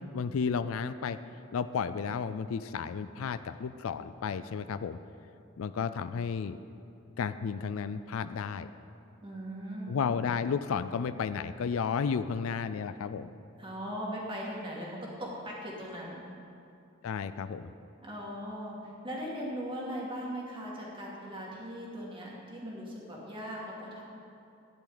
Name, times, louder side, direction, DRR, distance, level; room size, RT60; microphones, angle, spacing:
voice 1, 0.1-1.2 1.5-5.0 5.6-6.6 7.2-8.7 9.9-13.3 17.0-17.7, left 6 dB, 75° left, 13 dB, 0.4 m, -32 dB
voice 2, 9.2-10.3 13.6-16.2 18.0-24.0, equal, 25° right, -4 dB, 2.2 m, -39 dB
13.5 x 10.5 x 4.0 m, 2.6 s
head